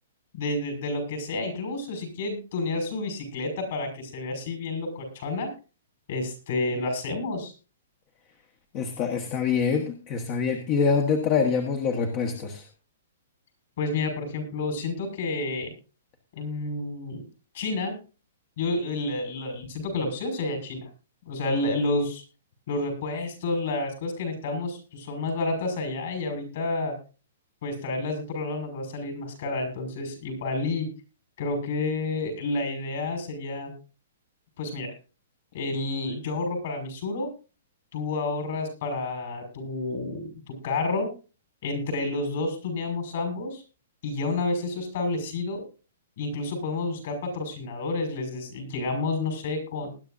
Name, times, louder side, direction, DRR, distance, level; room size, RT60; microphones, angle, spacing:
voice 1, 0.3-5.5 6.1-7.5 13.8-15.7 16.3-17.2 17.5-17.9 18.6-20.9 21.3-22.2 22.7-26.9 27.6-30.9 31.4-33.7 34.6-34.9 35.5-37.3 37.9-41.1 41.6-43.6 44.0-45.6 46.2-49.9, left 2 dB, 50° left, 5 dB, 5.5 m, -30 dB
voice 2, 8.7-12.6, left 5 dB, 25° left, 5 dB, 1.3 m, -25 dB
20.0 x 11.0 x 2.6 m, 0.34 s
hypercardioid pair, 170°, 0 cm